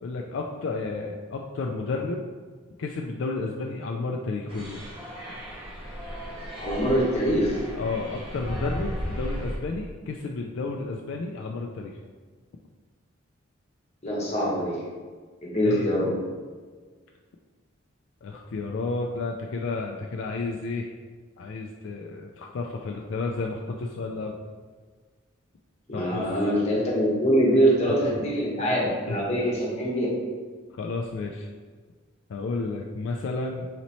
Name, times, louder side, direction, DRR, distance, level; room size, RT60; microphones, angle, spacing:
voice 1, 0.0-2.2 2.8-4.8 7.8-12.0 15.6-15.9 18.2-20.9 21.4-24.4 25.9-26.3 27.9-28.0 29.1-29.2 30.7-31.5 32.3-33.7, left 3 dB, 65° left, 1 dB, 0.3 m, -32 dB
sound 1, 4.5-9.6, equal, 25° right, 0.8 m, -35 dB
voice 2, 6.6-7.5 14.0-14.8 15.4-16.1 25.9-30.1, equal, 35° left, -4 dB, 1.1 m, -24 dB
4.1 x 3.0 x 4.1 m, 1.5 s
head